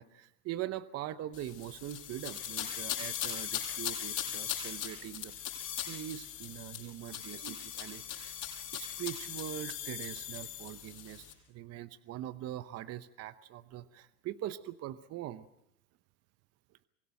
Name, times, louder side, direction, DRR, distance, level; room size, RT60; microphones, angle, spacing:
voice 1, 0.0-5.3 5.8-8.4 8.7-15.5, right 13 dB, 35° right, 12 dB, 0.9 m, -42 dB
sound 1, 1.3-11.3, left 10 dB, 40° left, 7.4 m, -39 dB
24.0 x 16.5 x 7.7 m, 0.83 s
supercardioid pair, 125°, 45 cm